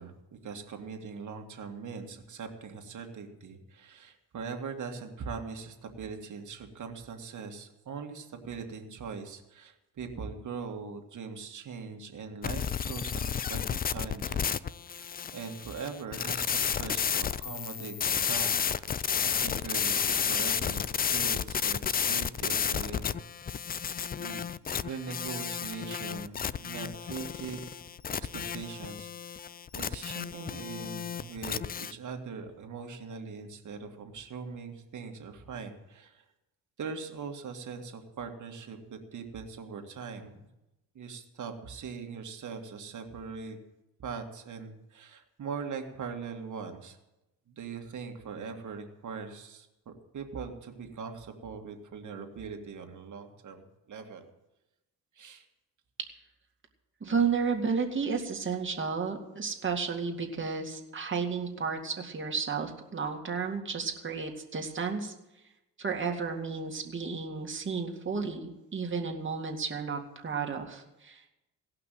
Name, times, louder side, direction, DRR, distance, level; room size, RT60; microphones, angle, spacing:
voice 1, 0.0-14.6 14.9-23.2 24.2-24.5 24.8-27.7 28.1-29.4 29.7-36.2 36.8-40.5 41.0-43.6 44.0-47.0 47.5-54.2 55.2-55.4, right 5 dB, 55° right, 4 dB, 2.0 m, -41 dB
sound 1, 12.4-31.9, left 7 dB, 25° left, 0.4 m, -32 dB
voice 2, 57.0-65.1 65.8-71.2, right 5 dB, 35° right, 2 dB, 2.2 m, -32 dB
17.0 x 5.9 x 9.3 m, 0.95 s
cardioid pair, 85°, 36 cm